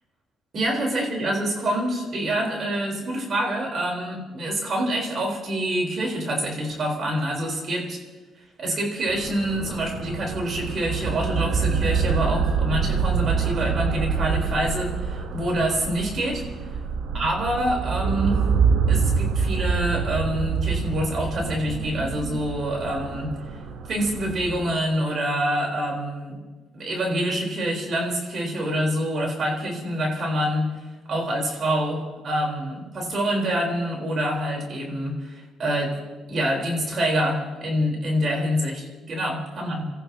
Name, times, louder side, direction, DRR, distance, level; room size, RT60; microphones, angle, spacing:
voice 1, 0.5-8.0 8.6-16.4 17.1-18.4 18.9-23.4 23.9-26.4 26.7-30.7 31.1-36.0 36.3-39.9, right 1 dB, 55° right, 0 dB, 4.5 m, -26 dB
sound 1, 9.1-24.7, right 5 dB, 85° right, 1.3 m, -26 dB
29.0 x 14.5 x 3.0 m, 1.3 s
cardioid pair, 90°, 0 cm